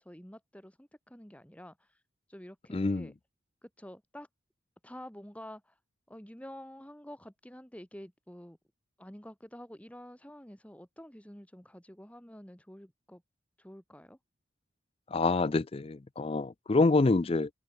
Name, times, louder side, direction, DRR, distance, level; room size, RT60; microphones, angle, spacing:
voice 1, 0.0-2.0 2.3-3.1 3.6-4.3 4.8-5.8 6.1-8.6 9.0-13.2 13.6-14.2, equal, 5° left, 2.0 m, -49 dB
voice 2, 2.7-3.1 15.1-17.5, left 3 dB, 30° left, 0.4 m, -26 dB
open air
head